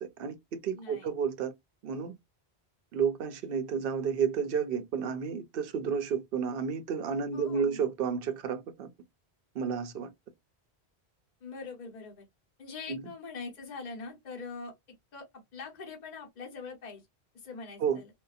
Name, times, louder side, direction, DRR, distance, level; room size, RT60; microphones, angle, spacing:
voice 1, 0.0-1.5 1.8-2.1 2.9-8.9 9.5-10.1 12.9-13.0 17.8-18.0, right 6 dB, 65° right, 0.7 m, -31 dB
voice 2, 0.7-1.1 7.3-7.9 11.4-12.2 12.6-14.7 15.1-15.3 15.5-17.1 17.3-18.1, left 4 dB, 45° left, 1.0 m, -43 dB
2.7 x 2.2 x 2.3 m
omnidirectional pair, 1.1 m